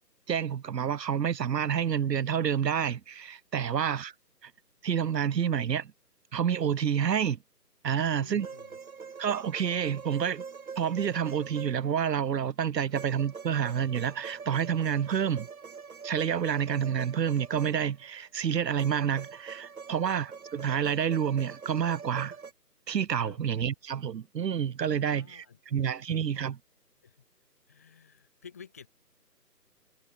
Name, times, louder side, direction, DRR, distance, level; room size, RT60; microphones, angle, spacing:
voice 1, 0.3-4.1 4.4-4.5 4.8-5.9 6.3-7.4 7.8-8.5 9.2-10.4 10.8-15.5 16.0-22.4 22.9-26.6, right 8 dB, 75° right, 0.6 m, -29 dB
voice 2, 3.6-4.0 8.0-8.8 20.0-20.2 23.2-23.4 25.0-26.0 27.0-27.2 27.7-28.9, left 7 dB, 10° left, 1.1 m, -52 dB
sound 1, 8.4-12.2 12.9-18.1 18.8-22.5, right 5 dB, 60° right, 1.0 m, -44 dB
figure-of-eight pair, 155°, 50 cm